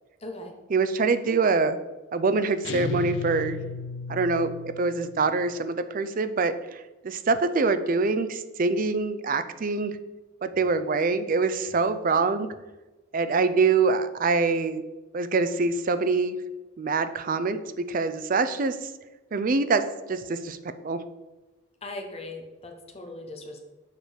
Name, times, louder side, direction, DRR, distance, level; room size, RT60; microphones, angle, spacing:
voice 1, 0.2-0.5 21.8-23.6, left 2 dB, 30° left, 3 dB, 1.0 m, -39 dB
voice 2, 0.7-1.8 2.1-3.6 4.1-10.0 10.4-12.5 13.1-14.8 15.1-16.4 16.8-18.8 19.3-19.8 20.1-20.6 20.8-21.0, right 4 dB, 40° right, 11 dB, 0.4 m, -25 dB
sound 1, 2.6-5.2, left 6 dB, 60° left, 0.4 m, -34 dB
6.6 x 4.7 x 5.0 m, 1.1 s
head